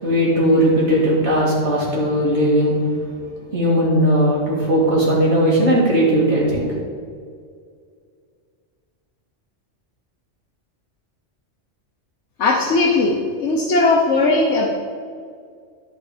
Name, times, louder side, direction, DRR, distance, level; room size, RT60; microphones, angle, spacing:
voice 1, 0.0-2.8 3.5-6.7, equal, 70° right, -4 dB, 2.8 m, -17 dB
voice 2, 12.4-14.7, left 3 dB, 75° left, -1 dB, 1.3 m, -18 dB
12.0 x 5.3 x 5.0 m, 2.1 s
omnidirectional pair, 1.2 m